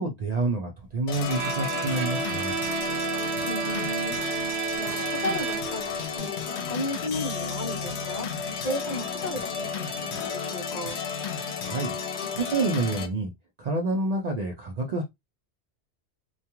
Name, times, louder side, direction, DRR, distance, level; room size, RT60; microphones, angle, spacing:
voice 1, 0.0-2.5 11.6-11.9 12.3-13.3 13.6-15.0, right 2 dB, 60° right, 0.4 m, -28 dB
sound 1, 1.1-13.1, left 6 dB, 90° left, 0.9 m, -32 dB
Bowed string instrument, 1.3-5.9, right 9 dB, 80° right, 0.9 m, -31 dB
voice 2, 3.4-11.0, left 1 dB, 50° left, 0.7 m, -35 dB
2.3 x 2.2 x 2.8 m
omnidirectional pair, 1.1 m